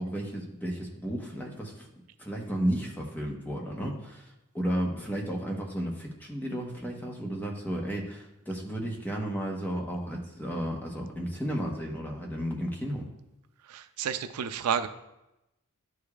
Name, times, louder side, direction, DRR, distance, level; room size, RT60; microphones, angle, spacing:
voice 1, 0.0-1.9 2.2-13.0, equal, 10° left, -1 dB, 1.0 m, -33 dB
voice 2, 13.6-14.9, right 7 dB, 85° right, 11 dB, 0.4 m, -30 dB
11.0 x 4.9 x 2.4 m, 0.92 s
head